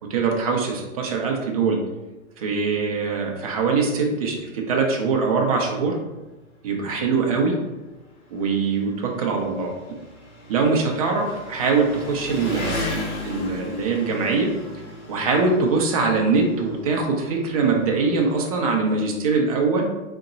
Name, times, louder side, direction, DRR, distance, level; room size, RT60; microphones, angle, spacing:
voice 1, 0.0-1.8 2.4-6.0 6.6-7.6 8.3-9.7 10.5-12.9 13.2-14.6 15.1-19.9, right 4 dB, 25° right, 1 dB, 0.5 m, -22 dB
Engine, 4.1-4.2 4.6-4.7 5.7-5.8 6.0-18.7, left 1 dB, 55° left, 1.3 m, -36 dB
3.9 x 2.1 x 3.9 m, 1.1 s
hypercardioid pair, 130°, 42 cm